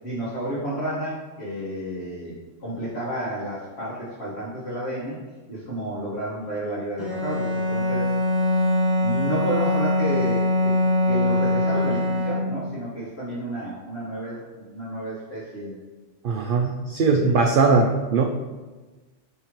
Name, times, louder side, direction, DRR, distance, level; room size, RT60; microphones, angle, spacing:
voice 1, 0.0-5.2 5.5-8.1 9.0-10.8 11.1-15.8 17.0-17.4, equal, 55° left, -10 dB, 1.8 m, -31 dB
Bowed string instrument, 7.0-12.8, left 1 dB, 20° right, 1.8 m, -23 dB
voice 2, 16.2-18.2, right 4 dB, 60° right, 2 dB, 0.6 m, -20 dB
10.0 x 3.6 x 3.0 m, 1.3 s
omnidirectional pair, 1.3 m